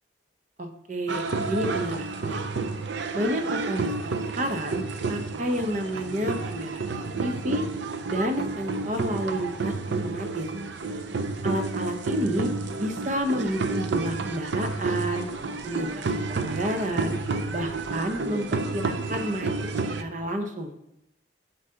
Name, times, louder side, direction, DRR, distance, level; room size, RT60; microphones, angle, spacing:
voice 1, 0.6-2.4 3.1-4.1 4.4-6.8 7.2-7.7 8.1-10.5 11.4-12.5 12.8-15.3 15.6-17.2 17.5-19.5 20.0-20.7, equal, 40° right, 6 dB, 0.7 m, -30 dB
sound 1, 1.1-20.0, right 3 dB, 70° right, 0.5 m, -30 dB
7.3 x 4.0 x 5.5 m, 0.82 s
head